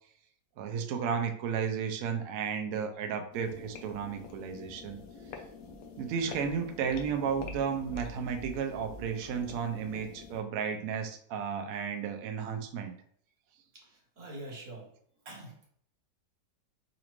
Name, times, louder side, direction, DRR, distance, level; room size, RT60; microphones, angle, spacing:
voice 1, 0.6-5.0 6.0-12.9, right 7 dB, 70° right, 5 dB, 0.8 m, -33 dB
sound 1, 3.3-10.4, left 4 dB, 70° left, 0.9 m, -46 dB
voice 2, 13.7-14.9 15.2-15.7, right 2 dB, 50° right, -2 dB, 1.3 m, -45 dB
4.0 x 2.5 x 3.0 m, 0.63 s
omnidirectional pair, 2.0 m